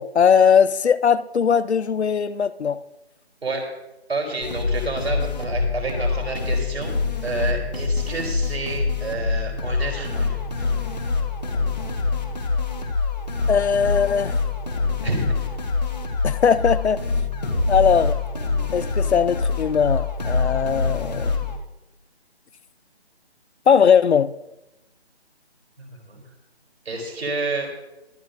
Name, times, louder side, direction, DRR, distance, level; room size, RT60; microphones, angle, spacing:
voice 1, 0.0-2.8 13.5-14.4 16.2-17.0 17.7-18.2 18.7-21.4 23.7-24.3, left 7 dB, 80° left, 0.7 m, -19 dB
voice 2, 4.1-7.0 7.2-10.4 15.0-15.4 25.8-26.2 26.9-27.7, right 2 dB, 70° right, 3.6 m, -29 dB
sound 1, 4.4-21.6, left 4 dB, 40° left, 1.7 m, -25 dB
23.0 x 9.6 x 2.6 m
figure-of-eight pair, 170°, 33 cm